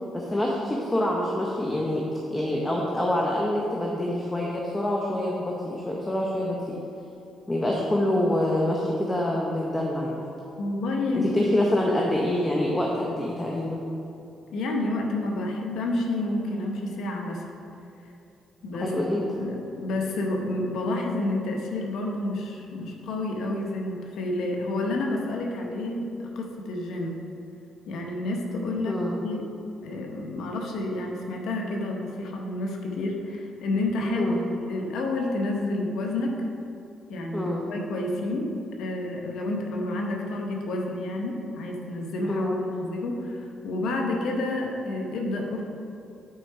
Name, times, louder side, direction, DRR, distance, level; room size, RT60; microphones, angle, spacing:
voice 1, 0.1-6.8 7.5-10.3 11.3-13.8 18.8-19.2 28.9-29.2 34.1-34.4 37.3-37.7 42.3-42.6, left 1 dB, 15° left, -2 dB, 0.8 m, -26 dB
voice 2, 10.6-11.5 14.5-17.5 18.6-18.9 19.4-26.1 26.3-27.2 27.9-29.0 29.2-29.5 29.8-34.3 34.7-36.4 37.1-45.6, left 2 dB, 80° left, 1 dB, 1.0 m, -29 dB
7.9 x 4.5 x 4.6 m, 2.7 s
cardioid pair, 90°, 0 cm